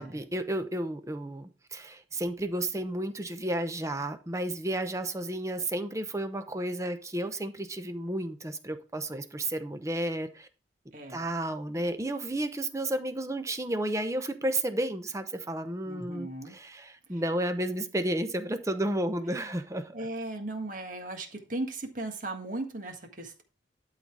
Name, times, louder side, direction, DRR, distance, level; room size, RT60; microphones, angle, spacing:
voice 1, 0.0-10.5 11.1-19.9, right 1 dB, 15° right, 8 dB, 0.8 m, -32 dB
voice 2, 10.9-11.2 15.9-16.6 19.9-23.4, right 2 dB, 45° right, 4 dB, 1.6 m, -37 dB
12.0 x 4.1 x 4.7 m, 0.34 s
head